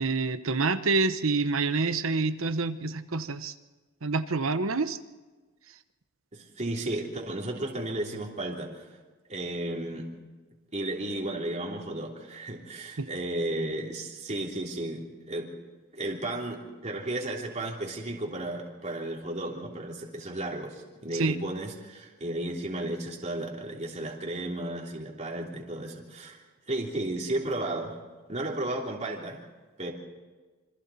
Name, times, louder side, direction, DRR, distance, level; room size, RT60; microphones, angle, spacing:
voice 1, 0.0-3.5 4.0-5.0 13.0-13.1 21.1-21.4, right 3 dB, 75° right, 11 dB, 1.0 m, -27 dB
voice 2, 6.3-8.8 9.3-10.1 10.7-15.5 15.9-26.4 26.7-27.9 28.3-29.4 29.8-29.9, right 1 dB, 35° right, -2 dB, 3.2 m, -34 dB
27.0 x 25.5 x 4.2 m, 1.3 s
head